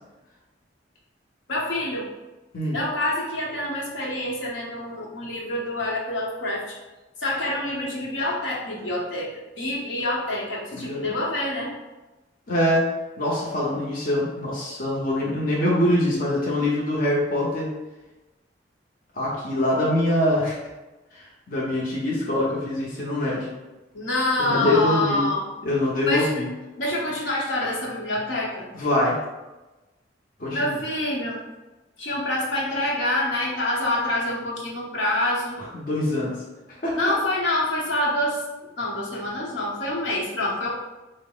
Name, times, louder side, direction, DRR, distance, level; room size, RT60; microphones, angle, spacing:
voice 1, 1.5-2.0 2.7-6.8 7.2-11.7 23.9-25.4 26.1-26.3 26.8-28.6 30.5-31.4 32.0-35.6 37.0-38.4 38.8-40.7, left 1 dB, 80° left, -4 dB, 0.9 m, -26 dB
voice 2, 12.5-12.8 13.2-17.7 19.1-20.6 21.1-23.5 24.4-25.3 25.6-26.5 28.7-29.2 30.4-30.7 35.7-36.4 36.8-37.0, left 1 dB, 50° left, -5 dB, 0.8 m, -24 dB
3.9 x 2.0 x 3.8 m, 1.1 s
head